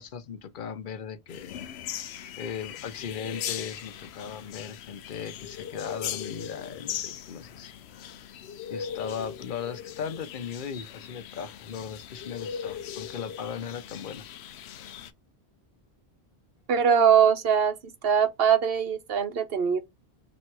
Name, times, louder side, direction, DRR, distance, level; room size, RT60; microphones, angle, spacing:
voice 1, 0.0-1.6 2.4-7.7 8.7-14.2, left 7 dB, 55° left, 0.8 m, -37 dB
sound 1, 1.3-15.1, left 9 dB, 80° left, 0.8 m, -39 dB
voice 2, 16.7-17.8 18.0-19.8, right 7 dB, 65° right, 1.0 m, -22 dB
3.5 x 3.1 x 4.4 m
omnidirectional pair, 1.1 m